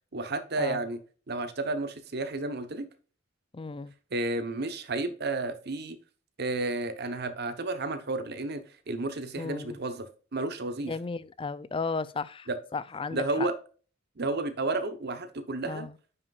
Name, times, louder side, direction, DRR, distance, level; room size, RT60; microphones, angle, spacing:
voice 1, 0.1-1.0 1.3-2.9 4.1-6.0 6.4-8.6 8.9-10.9 12.5-12.6 13.1-13.5 14.2-15.9, right 2 dB, 55° right, 1.0 m, -31 dB
voice 2, 3.5-3.9 9.4-9.8 10.9-13.5 15.7-15.9, left 4 dB, 25° left, 0.4 m, -35 dB
9.4 x 5.9 x 2.4 m
head